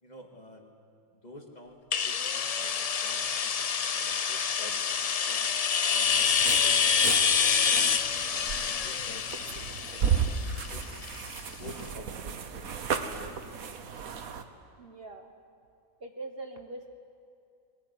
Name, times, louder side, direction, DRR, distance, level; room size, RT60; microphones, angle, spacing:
voice 1, 0.0-0.7 1.2-5.4 5.9-7.2 7.5-9.3 9.5-10.4 10.7-10.8 11.3-13.9, left 1 dB, 30° left, 2 dB, 2.3 m, -50 dB
sound 1, 1.9-11.5, left 7 dB, 85° left, 0.3 m, -27 dB
sound 2, 6.1-14.4, right 7 dB, 75° right, 1.6 m, -34 dB
voice 2, 14.8-15.3 16.0-16.9, right 2 dB, 45° right, 4 dB, 1.4 m, -42 dB
22.0 x 18.0 x 9.6 m, 2.5 s
omnidirectional pair, 1.5 m